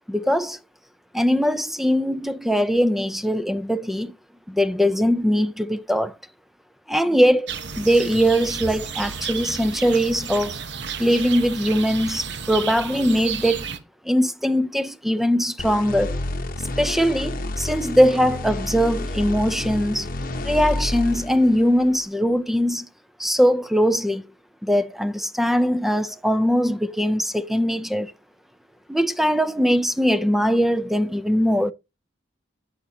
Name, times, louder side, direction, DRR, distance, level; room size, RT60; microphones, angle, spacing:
voice 1, 0.1-0.6 1.1-4.1 4.5-6.2 6.9-7.5 7.8-10.6 11.0-13.7 14.0-16.1 16.8-20.1 20.4-22.9 23.2-24.3 24.6-28.1 28.9-31.7, equal, ahead, 0.5 m, -21 dB
sound 1, 7.5-13.8, right 6 dB, 65° right, 0.9 m, -32 dB
sound 2, 15.6-22.0, left 1 dB, 50° left, 1.0 m, -30 dB
8.8 x 6.4 x 2.8 m
head